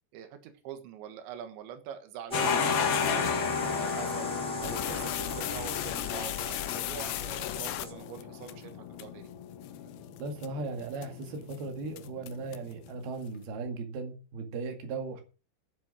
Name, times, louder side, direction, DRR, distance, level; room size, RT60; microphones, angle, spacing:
voice 1, 0.1-4.3 4.6-5.1 5.4-9.3, right 9 dB, 90° right, 8 dB, 3.7 m, -44 dB
sound 1, 2.3-13.1, left 8 dB, 60° left, 3.2 m, -35 dB
sound 2, 2.3-7.9, equal, ahead, 1.3 m, -36 dB
sound 3, 4.6-8.5 9.0-9.1 9.6-9.8 10.2-10.5 10.9-11.2 11.5-11.6 12.0-12.7, left 16 dB, 80° left, 2.9 m, -36 dB
voice 2, 10.2-15.2, right 3 dB, 65° right, 5 dB, 3.9 m, -37 dB
12.0 x 7.7 x 6.3 m, 0.34 s
omnidirectional pair, 5.1 m